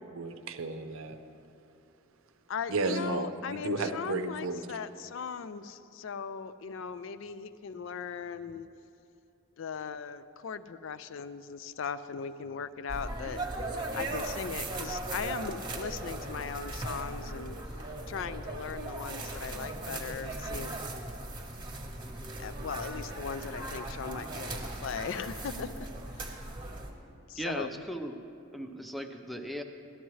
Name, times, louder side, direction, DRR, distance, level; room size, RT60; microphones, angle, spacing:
voice 1, 0.1-1.2 2.7-4.6, right 3 dB, 75° right, 8 dB, 0.6 m, -33 dB
voice 2, 2.5-8.7 9.6-13.4 13.9-17.6 18.1-20.8 22.4-25.9 26.2-26.4 27.3-27.8, left 6 dB, 65° left, 13 dB, 0.4 m, -38 dB
sound 1, 12.9-26.9, right 2 dB, 25° right, 1.0 m, -38 dB
voice 3, 27.4-28.2 28.5-29.6, equal, ahead, 5 dB, 0.4 m, -37 dB
13.5 x 12.0 x 3.1 m, 2.8 s
head